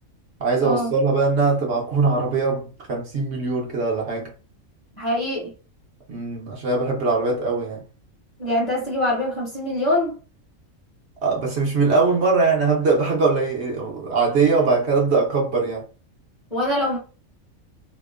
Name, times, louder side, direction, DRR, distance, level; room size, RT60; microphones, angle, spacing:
voice 1, 0.4-4.3 6.1-7.8 11.2-15.9, right 4 dB, 60° right, 0.9 m, -21 dB
voice 2, 5.0-5.5 8.4-10.2 16.5-17.0, left 1 dB, 35° left, 1.0 m, -23 dB
2.8 x 2.1 x 2.3 m
omnidirectional pair, 1.4 m